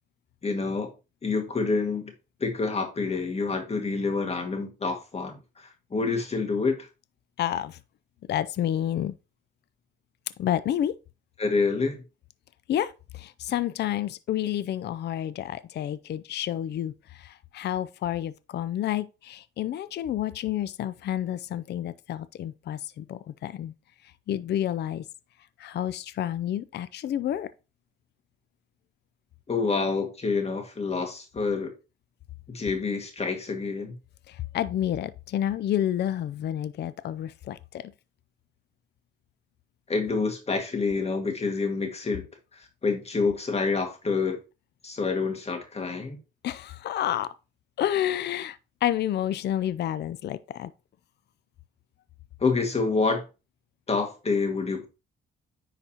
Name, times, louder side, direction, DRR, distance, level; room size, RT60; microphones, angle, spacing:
voice 1, 0.4-0.9 1.2-2.1 2.4-6.9 11.4-12.0 29.5-31.7 32.5-33.9 39.9-42.3 42.5-44.4 44.8-46.2 52.4-53.2 53.9-54.9, left 4 dB, 30° left, 1.9 m, -27 dB
voice 2, 7.4-7.8 8.3-9.1 10.4-10.9 12.7-23.7 24.3-25.0 25.6-27.5 34.3-37.9 46.4-47.3 47.8-50.7, left 11 dB, 60° left, 0.5 m, -29 dB
9.9 x 4.0 x 2.9 m
cardioid pair, 90°, 20 cm